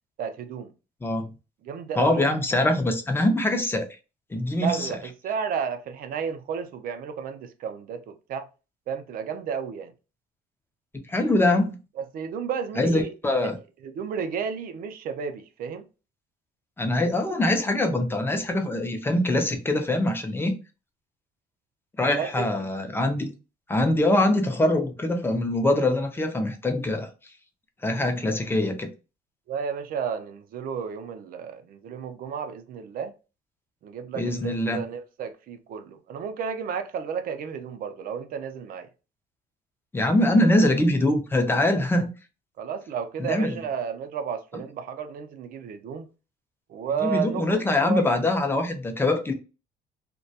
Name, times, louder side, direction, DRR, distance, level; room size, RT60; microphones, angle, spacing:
voice 1, 0.2-0.7 1.6-2.3 4.6-8.5 8.9-9.9 12.0-13.1 13.4-15.9 22.1-22.5 29.5-33.1 33.8-38.9 42.6-46.1 46.7-48.1, right 7 dB, 60° right, 0.5 m, -32 dB
voice 2, 2.0-3.9 4.3-4.9 11.1-11.8 12.8-13.6 16.8-20.5 22.0-23.3 23.7-27.1 27.8-28.9 34.2-34.8 39.9-42.1 43.2-43.6 47.0-49.3, left 1 dB, 15° left, 0.5 m, -23 dB
2.2 x 2.2 x 2.6 m
cardioid pair, 110°, 17 cm